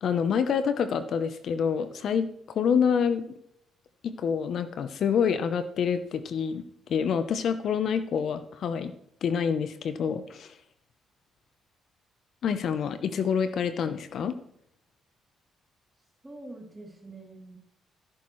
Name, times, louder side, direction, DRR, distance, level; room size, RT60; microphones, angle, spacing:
voice 1, 0.0-3.3 4.0-6.6 6.9-8.9 9.2-10.5 12.4-14.3, left 7 dB, 65° left, 11 dB, 0.7 m, -27 dB
voice 2, 16.2-17.6, right 2 dB, 15° right, 0 dB, 3.0 m, -45 dB
15.0 x 8.6 x 3.1 m, 0.73 s
cardioid pair, 90°, 0 cm